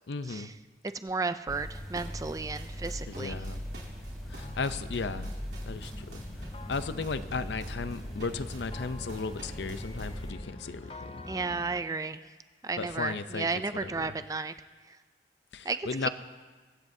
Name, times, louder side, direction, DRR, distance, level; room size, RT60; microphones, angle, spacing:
voice 1, 0.1-0.5 3.1-3.6 4.3-5.3 5.7-6.2 6.7-11.2 12.8-13.5 13.8-14.1 15.5-16.1, left 4 dB, 75° left, 12 dB, 0.6 m, -35 dB
voice 2, 1.0-3.4 11.3-12.2 12.6-14.5 15.7-16.1, right 4 dB, 20° right, 11 dB, 0.3 m, -33 dB
sound 1, 1.5-10.3, equal, ahead, 3.4 m, -40 dB
sound 2, 1.7-10.1, right 2 dB, 70° right, 3.4 m, -50 dB
sound 3, 4.4-11.8, left 2 dB, 30° left, 0.6 m, -45 dB
23.0 x 15.5 x 2.7 m, 1.3 s
head